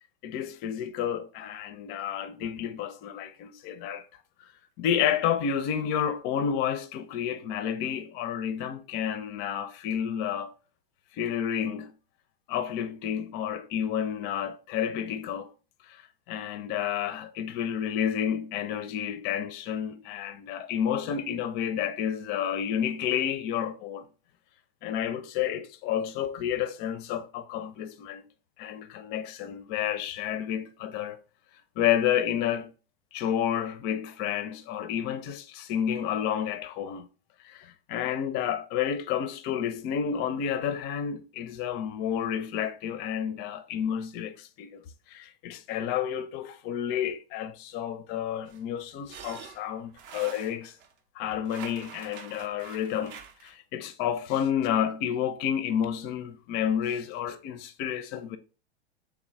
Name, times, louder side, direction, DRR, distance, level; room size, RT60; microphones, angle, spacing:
voice 1, 0.2-4.0 4.4-4.5 4.8-10.5 11.1-11.9 12.5-15.5 15.8-16.0 16.3-24.1 24.8-28.2 28.6-31.2 31.8-32.7 33.1-37.1 37.4-50.8 51.2-58.4, left 9 dB, 30° left, 0.4 m, -30 dB
sound 1, 48.5-50.9 51.4-53.6, right 7 dB, 35° right, 0.5 m, -46 dB
3.4 x 3.1 x 3.3 m
hypercardioid pair, 110°, 31 cm